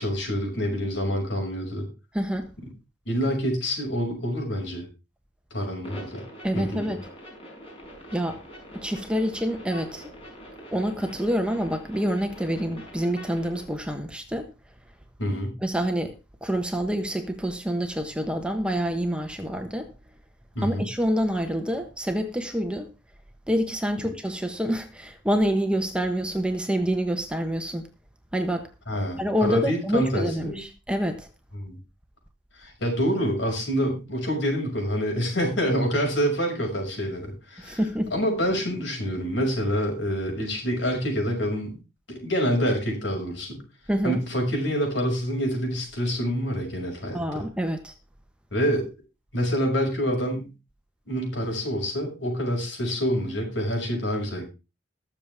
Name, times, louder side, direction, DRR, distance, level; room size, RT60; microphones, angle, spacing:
voice 1, 0.0-1.9 3.1-4.8 5.5-6.2 6.5-7.0 15.2-15.5 20.5-20.9 24.0-24.1 28.9-30.6 31.5-31.8 32.5-37.8 38.1-41.8 42.1-43.6 44.0-47.4 48.5-48.9 49.3-50.5 51.1-54.5, equal, 75° left, 6.4 m, -27 dB
voice 2, 2.1-2.5 6.4-7.0 8.1-8.4 8.7-10.1 10.7-14.5 15.6-16.2 16.4-19.9 20.6-22.9 23.5-27.9 28.3-28.7 29.2-31.3 37.6-38.1 43.9-44.2 47.1-47.9, equal, 5° right, 1.2 m, -27 dB
sound 1, 5.8-13.6, equal, 30° left, 5.2 m, -44 dB
20.5 x 7.2 x 3.6 m
head